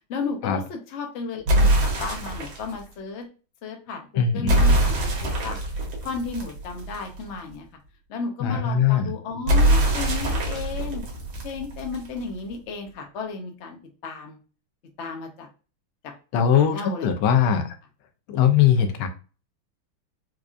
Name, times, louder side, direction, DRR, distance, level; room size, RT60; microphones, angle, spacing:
voice 1, 0.1-1.7 2.0-3.2 3.6-5.6 6.0-7.7 8.1-11.0 11.4-13.8 14.0-14.4 15.0-15.5 16.5-17.1, left 4 dB, 70° left, 3 dB, 0.6 m, -33 dB
sound 1, 1.5-2.7 4.5-7.2 9.5-12.2, right 1 dB, 75° right, 1.9 m, -23 dB
voice 2, 4.1-4.6 8.4-9.1 16.3-17.7 18.3-19.1, left 8 dB, 90° left, 7 dB, 1.5 m, -20 dB
4.6 x 2.5 x 2.4 m, 0.36 s
omnidirectional pair, 2.3 m